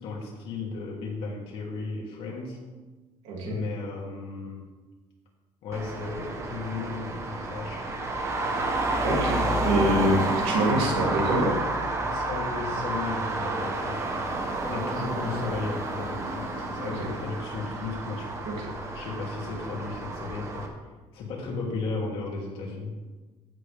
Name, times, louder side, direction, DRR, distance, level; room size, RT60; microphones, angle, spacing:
voice 1, 0.0-2.6 3.4-4.7 5.6-7.8 12.0-14.0 14.7-18.3 18.9-20.7 21.1-22.9, left 3 dB, 60° left, -3 dB, 2.8 m, -35 dB
voice 2, 3.2-3.6 9.0-11.5 16.8-17.1 18.5-18.7, right 1 dB, 85° right, -2 dB, 2.9 m, -26 dB
Traffic noise roadway noise, 5.7-20.7, right 2 dB, 25° right, 1.1 m, -30 dB
15.0 x 6.9 x 3.5 m, 1.3 s
cardioid pair, 175°, 11 cm